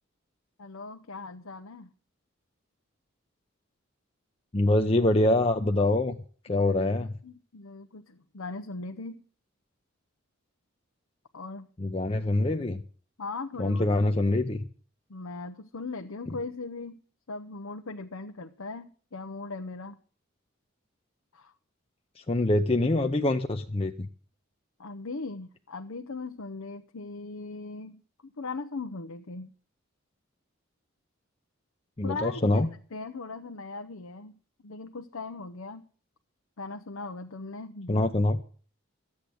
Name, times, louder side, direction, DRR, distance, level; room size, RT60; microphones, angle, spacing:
voice 1, 0.6-1.9 6.5-6.6 7.2-9.2 11.3-11.7 13.2-13.8 15.1-17.0 17.3-20.0 21.3-21.5 24.8-29.5 32.0-34.3 34.6-35.8 36.6-38.1, left 3 dB, 85° left, 6 dB, 0.8 m, -39 dB
voice 2, 4.5-6.1 6.5-7.1 11.8-12.8 13.6-14.7 22.2-24.1 32.0-32.7 37.9-38.4, left 2 dB, 30° left, 4 dB, 0.6 m, -25 dB
13.5 x 8.7 x 7.7 m, 0.43 s
head